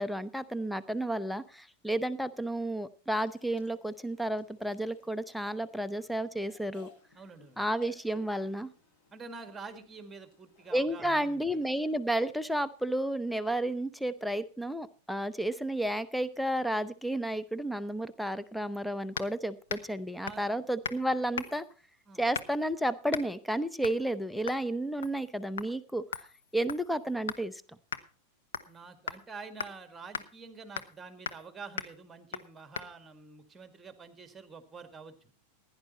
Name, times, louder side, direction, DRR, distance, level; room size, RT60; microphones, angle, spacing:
voice 1, 0.0-6.9 7.6-8.7 10.7-21.6 22.2-26.0 26.5-27.6, right 1 dB, ahead, 14 dB, 0.8 m, -32 dB
sound 1, 3.2-12.0, left 3 dB, 45° left, 6.1 m, -61 dB
voice 2, 7.1-7.6 9.1-11.7 20.2-20.5 22.1-22.2 28.7-35.3, right 4 dB, 15° right, 10 dB, 1.9 m, -47 dB
sound 2, 19.2-19.4 19.7-19.9 20.3-20.5 20.8-21.0 21.4-21.7 22.3-22.7 23.1-23.3 23.8-24.0 24.5-24.7 25.0-25.3 25.6-25.7 26.1-27.5 27.9-28.0 28.5-28.8 29.1-29.2 29.6-29.7 30.1-30.3 30.8-31.0 31.3-31.5 31.8-31.9 32.3-32.5 32.8-32.9, left 7 dB, 65° left, 1.0 m, -38 dB
16.0 x 10.5 x 4.2 m, 0.37 s
figure-of-eight pair, 90°, 0 cm